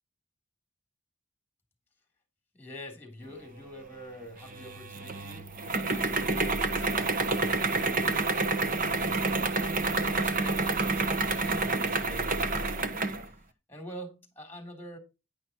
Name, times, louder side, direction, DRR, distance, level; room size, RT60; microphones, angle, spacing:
voice 1, 2.5-8.3 8.9-12.5 12.8-13.0 13.2-13.4 13.7-15.0, equal, 10° left, 5 dB, 3.5 m, -46 dB
sound 1, 4.4-13.2, right 3 dB, 45° right, 1.1 m, -28 dB
10.5 x 10.5 x 3.0 m, 0.27 s
head